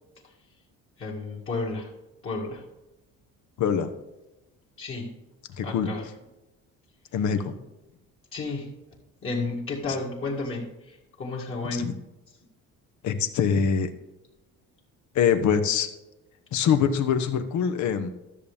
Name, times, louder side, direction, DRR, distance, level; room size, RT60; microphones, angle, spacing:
voice 1, 1.0-1.9 2.2-2.6 4.8-5.1 5.6-6.1 8.3-8.8 9.2-11.9, left 3 dB, 40° left, -3 dB, 2.1 m, -32 dB
voice 2, 3.6-3.9 5.6-5.9 7.1-7.6 11.6-11.9 13.0-13.9 15.1-15.9 16.5-18.1, left 7 dB, 60° left, 9 dB, 1.0 m, -24 dB
13.0 x 7.1 x 3.5 m, 0.99 s
cardioid pair, 145°, 33 cm